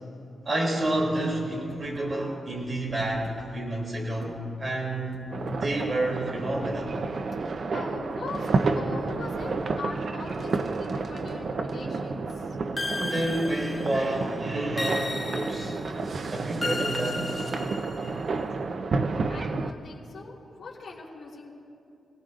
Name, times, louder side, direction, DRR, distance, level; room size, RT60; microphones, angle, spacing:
voice 1, 0.4-5.2 5.6-7.0 12.8-15.8 16.3-17.4, right 1 dB, 30° right, -3 dB, 2.8 m, -29 dB
sound 1, 0.8-1.3 1.7-2.0 2.5-3.4 3.9-4.3 5.1-5.9, left 3 dB, 40° left, 3.4 m, -49 dB
sound 2, 5.3-19.7, right 3 dB, 45° right, 0.6 m, -30 dB
voice 2, 7.7-12.3 19.3-21.5, left 3 dB, 65° left, -3 dB, 3.5 m, -40 dB
sound 3, 12.8-14.1 14.8-15.9 16.6-18.1, left 2 dB, 20° left, 0.9 m, -34 dB
27.0 x 18.0 x 2.5 m, 2.5 s
wide cardioid pair, 160°, 0 cm